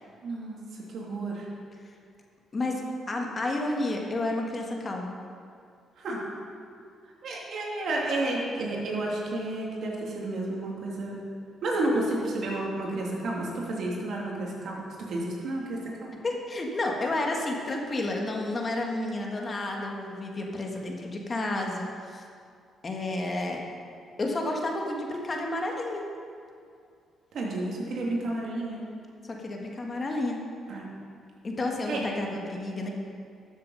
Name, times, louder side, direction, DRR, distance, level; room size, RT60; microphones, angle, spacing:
voice 1, 0.2-0.6 0.9-1.5 6.0-6.2 7.2-11.2 11.6-16.1 27.3-28.8 30.7-30.9 31.9-32.0, right 2 dB, 65° right, -3 dB, 2.7 m, -31 dB
voice 2, 3.1-5.1 16.2-22.2 22.8-23.6 24.2-26.0 29.3-30.4 31.4-32.9, left 2 dB, 35° left, 1 dB, 1.7 m, -31 dB
12.5 x 7.3 x 5.7 m, 2.3 s
cardioid pair, 90°, 0 cm